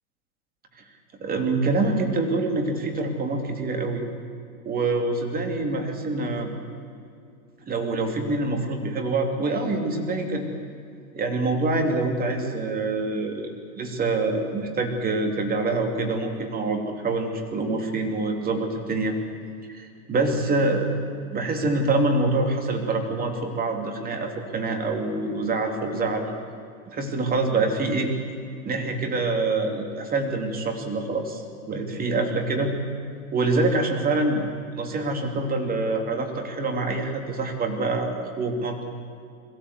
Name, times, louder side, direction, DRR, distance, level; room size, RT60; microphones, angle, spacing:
voice 1, 1.2-4.0 4.6-6.5 7.7-10.5 11.1-19.2 19.7-20.9 21.3-26.3 26.9-28.1 28.6-32.8 33.3-34.4 34.8-38.8, right 3 dB, 20° right, 3 dB, 2.8 m, -25 dB
21.5 x 15.5 x 8.3 m, 2.3 s
hypercardioid pair, 125°, 43 cm